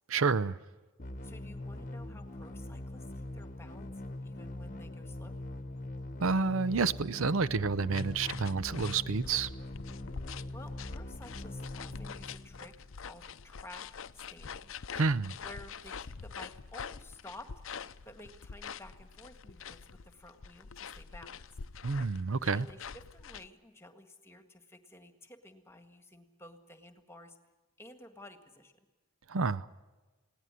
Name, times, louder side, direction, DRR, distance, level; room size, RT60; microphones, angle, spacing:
voice 1, 0.1-0.6 6.2-9.5 15.0-15.3 21.8-22.7 29.3-29.7, right 4 dB, 70° right, 0.6 m, -29 dB
sound 1, 1.0-12.9, left 1 dB, 35° left, 1.1 m, -42 dB
voice 2, 1.2-5.3 10.5-14.7 15.4-17.5 18.0-21.5 22.5-27.4 27.8-28.8, left 1 dB, 10° left, 1.7 m, -53 dB
sound 2, 7.9-23.5, left 6 dB, 65° left, 0.6 m, -45 dB
20.5 x 17.5 x 9.8 m
head